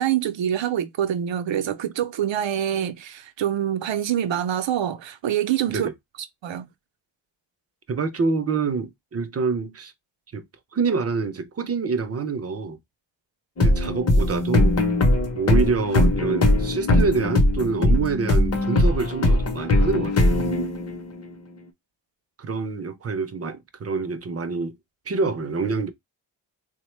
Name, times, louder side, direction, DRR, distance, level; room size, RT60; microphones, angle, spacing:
voice 1, 0.0-5.9 6.4-6.7, right 10 dB, 75° right, 0.6 m, -25 dB
voice 2, 7.9-9.9 10.3-10.4 10.7-12.8 13.6-14.8 15.4-20.4 22.4-24.7 25.1-25.9, right 4 dB, 35° right, 0.4 m, -26 dB
sound 1, 13.6-21.2, left 1 dB, 35° left, 0.7 m, -20 dB
3.5 x 2.1 x 3.0 m
wide cardioid pair, 145°, 45 cm